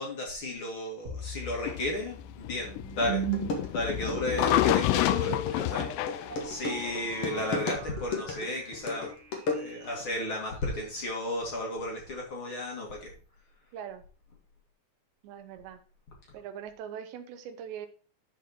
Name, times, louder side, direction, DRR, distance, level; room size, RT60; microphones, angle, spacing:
voice 1, 0.0-3.2 3.7-9.1 9.5-13.1, left 1 dB, 40° left, -1 dB, 2.0 m, -34 dB
sound 1, 1.0-10.2, right 3 dB, 50° right, 2.5 m, -39 dB
sound 2, 1.7-7.6, left 15 dB, 85° left, 2.4 m, -29 dB
sound 3, 2.9-3.0 3.3-10.0, left 3 dB, 70° left, 1.3 m, -35 dB
voice 2, 13.7-14.0 15.2-15.8 16.3-17.9, right 8 dB, 75° right, 8 dB, 3.0 m, -42 dB
12.0 x 4.5 x 4.4 m, 0.38 s
omnidirectional pair, 5.5 m